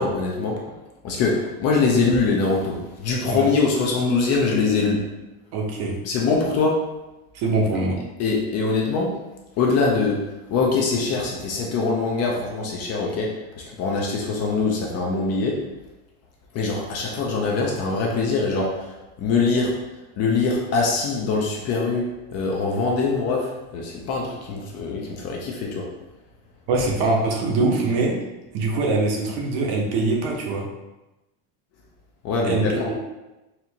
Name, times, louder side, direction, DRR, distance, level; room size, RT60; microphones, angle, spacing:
voice 1, 0.0-5.2 6.0-6.9 8.2-9.3 9.6-15.7 16.5-25.9 32.2-32.9, left 4 dB, 35° left, -1 dB, 0.5 m, -23 dB
voice 2, 5.5-6.0 7.3-8.0 26.7-28.1 28.5-30.6 32.4-32.6, right 3 dB, 55° right, 0 dB, 0.9 m, -23 dB
4.2 x 2.5 x 2.8 m, 1.0 s
cardioid pair, 150°, 46 cm